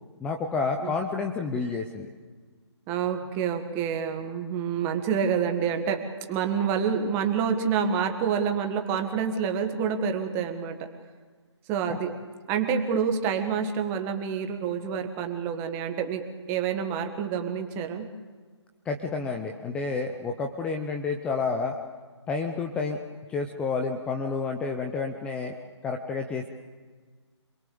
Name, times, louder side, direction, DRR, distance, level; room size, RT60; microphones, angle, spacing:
voice 1, 0.2-2.1 18.9-21.8 22.3-23.0 23.3-25.5 25.8-26.5, left 4 dB, 5° left, 4 dB, 0.8 m, -30 dB
voice 2, 2.9-6.0 6.3-10.9 11.7-12.1 12.5-18.1, right 7 dB, 15° right, 6 dB, 1.6 m, -27 dB
27.0 x 21.5 x 7.0 m, 1.5 s
figure-of-eight pair, 150°, 15 cm